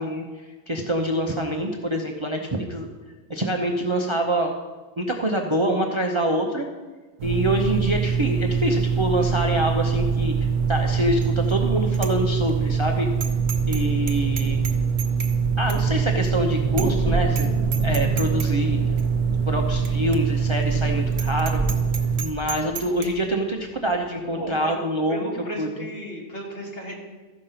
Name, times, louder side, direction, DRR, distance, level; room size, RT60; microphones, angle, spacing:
voice 1, 0.0-2.9 3.3-4.5 5.0-6.6 7.2-11.2 11.5-13.1 13.6-14.6 15.6-17.5 17.8-18.8 19.5-21.6 22.2-25.2 25.6-25.7, right 1 dB, 30° right, 2 dB, 0.7 m, -25 dB
sound 1, 7.2-22.2, right 6 dB, 90° right, 1.1 m, -23 dB
Bicycle bell, 11.2-11.6 11.9-12.1 12.5-12.6 13.2-13.8 14.1-15.4 15.7-15.8 16.2-16.3 16.8-17.0 17.3-17.5 17.7-18.5 19.0-19.1 19.9-20.0 20.1-20.2 20.6-20.7 21.1-23.1, right 7 dB, 60° right, 1.1 m, -33 dB
sound 2, 16.6-24.6, equal, 15° left, 2.9 m, -35 dB
voice 2, 24.4-24.7 25.1-27.1, equal, 50° left, -3 dB, 2.5 m, -34 dB
14.0 x 5.2 x 5.8 m, 1.3 s
omnidirectional pair, 1.2 m